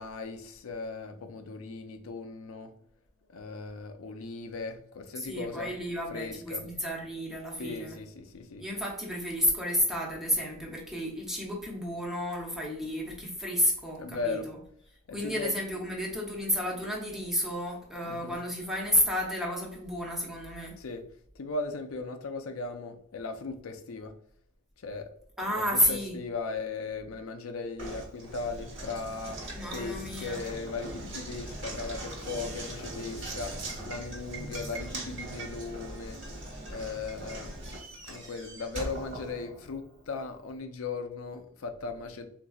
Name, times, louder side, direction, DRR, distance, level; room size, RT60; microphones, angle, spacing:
voice 1, 0.0-2.7 3.3-5.7 6.1-6.6 7.6-8.7 14.0-14.5 15.1-15.5 18.0-18.4 20.8-21.0 21.3-24.1 24.8-25.1 25.4-29.4 29.7-33.5 33.9-36.2 36.7-37.6 38.1-42.3, left 4 dB, 85° left, 0.5 m, -38 dB
voice 2, 5.2-8.0 8.6-14.5 15.1-20.7 25.4-26.2 29.5-30.4, equal, ahead, 0.7 m, -31 dB
Knock, 27.8-39.9, right 1 dB, 55° right, 1.3 m, -40 dB
3.9 x 2.6 x 2.3 m
head